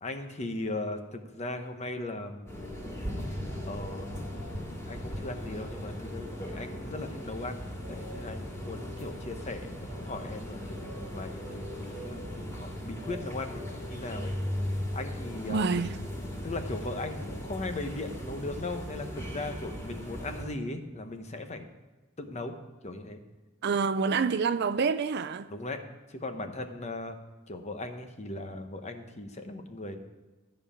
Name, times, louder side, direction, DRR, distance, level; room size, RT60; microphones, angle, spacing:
voice 1, 0.0-2.6 3.7-4.3 4.9-14.3 14.9-15.7 16.4-21.7 22.2-22.6 22.8-23.2 25.5-25.8 26.1-27.2 27.5-30.0, left 2 dB, 30° left, 1.0 m, -38 dB
sound 1, 2.5-20.5, equal, 15° left, 2.5 m, -38 dB
voice 2, 15.5-16.0 23.6-25.5, right 5 dB, 50° right, 0.4 m, -27 dB
13.5 x 5.3 x 8.5 m
head